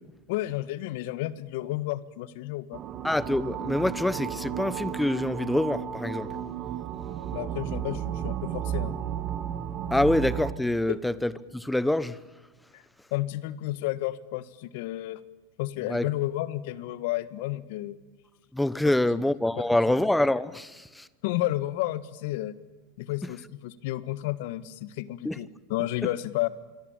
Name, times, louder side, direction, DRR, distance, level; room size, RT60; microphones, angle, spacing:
voice 1, 0.3-2.8 7.3-8.9 10.9-11.0 12.7-12.8 13.1-15.2 15.6-18.0 19.1-19.2 19.6-20.0 21.2-22.5 23.0-26.5, left 16 dB, 65° left, 1.5 m, -31 dB
sound 1, 2.7-10.5, right 10 dB, 40° right, 2.6 m, -33 dB
voice 2, 3.0-6.3 9.9-12.2 15.9-16.1 18.5-21.1 25.2-25.4, left 1 dB, 5° left, 1.0 m, -26 dB
26.5 x 23.0 x 8.9 m
hypercardioid pair, 105°, 0 cm